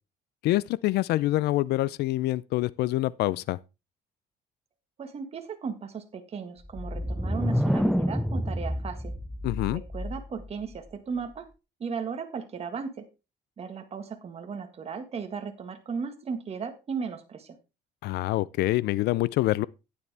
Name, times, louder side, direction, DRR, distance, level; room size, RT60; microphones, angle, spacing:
voice 1, 0.4-3.6 9.4-9.8 18.0-19.7, left 16 dB, 75° left, 0.5 m, -26 dB
voice 2, 5.0-9.2 9.7-11.5 11.8-13.1 13.6-17.6, right 6 dB, 35° right, 1.6 m, -36 dB
sound 1, 6.6-10.5, equal, ahead, 0.5 m, -28 dB
11.0 x 9.7 x 3.4 m
cardioid pair, 110°, 17 cm